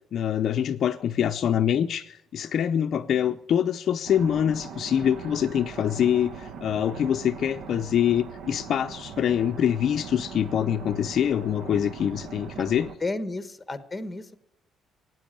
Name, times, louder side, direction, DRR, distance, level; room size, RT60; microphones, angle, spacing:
voice 1, 0.1-12.9, left 9 dB, 45° left, 7 dB, 0.5 m, -25 dB
voice 2, 2.9-3.4 12.6-12.7 13.0-14.4, left 2 dB, 10° left, 12 dB, 1.1 m, -33 dB
sound 1, 4.0-12.9, right 6 dB, 65° right, 1.1 m, -40 dB
17.5 x 9.3 x 8.8 m, 0.82 s
cardioid pair, 170°, 0 cm